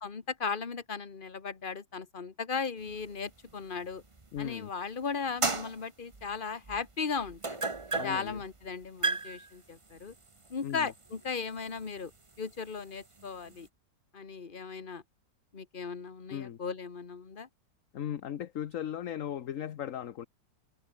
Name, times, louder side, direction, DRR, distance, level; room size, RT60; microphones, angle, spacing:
voice 1, 0.0-4.0 4.4-7.6 8.0-10.1 10.5-12.1 12.4-13.7 14.1-15.0 15.5-17.5, left 5 dB, 30° left, 1.6 m, -37 dB
sound 1, 2.9-4.7 5.2-13.7, right 3 dB, 20° right, 1.1 m, -37 dB
voice 2, 4.3-4.7 7.9-8.4 10.6-10.9 16.3-16.6 17.9-20.3, left 10 dB, 55° left, 1.1 m, -37 dB
omnidirectional pair, 2.0 m